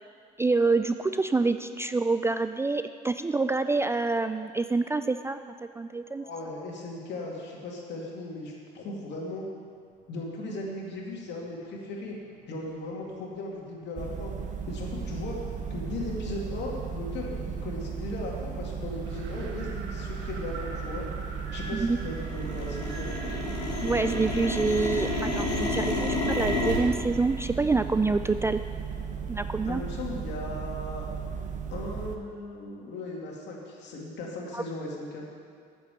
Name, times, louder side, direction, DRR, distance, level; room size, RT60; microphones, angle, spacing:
voice 1, 0.4-5.4 5.8-6.2 21.8-22.0 23.8-28.6 29.3-29.8 34.5-34.6, right 3 dB, 15° right, 10 dB, 0.3 m, -27 dB
voice 2, 6.2-9.4 10.1-12.2 12.5-14.3 14.7-15.4 15.7-21.0 21.5-23.1 29.6-31.1 31.7-35.2, left 2 dB, 60° left, -1 dB, 2.3 m, -37 dB
sound 1, 14.0-32.2, right 6 dB, 40° right, 1.0 m, -36 dB
sound 2, 15.9-16.0 16.6-16.8 17.4-17.7 18.2-18.3 18.5-19.1 19.3-21.7 21.9-26.8, left 2 dB, 90° left, 1.3 m, -31 dB
Wind, 19.0-25.5, right 3 dB, 70° right, 1.4 m, -45 dB
7.8 x 6.9 x 7.7 m, 2.2 s
hypercardioid pair, 65°, 20 cm